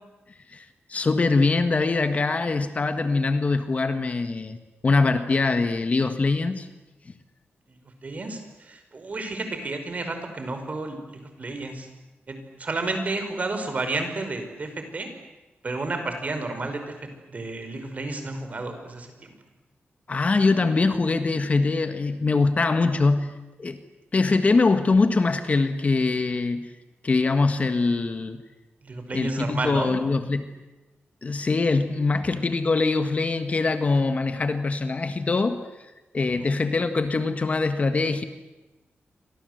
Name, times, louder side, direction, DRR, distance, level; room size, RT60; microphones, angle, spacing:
voice 1, 0.5-4.6 4.8-6.7 20.1-23.8 24.1-26.7 27.0-28.4 29.1-30.6 31.2-35.6 36.1-38.2, left 3 dB, 35° left, 9 dB, 1.7 m, -23 dB
voice 2, 7.7-11.9 12.3-15.1 15.6-19.3 28.8-30.0 36.4-36.6, right 2 dB, 35° right, 7 dB, 5.1 m, -32 dB
29.0 x 25.0 x 8.0 m, 1.1 s
wide cardioid pair, 145°, 4 cm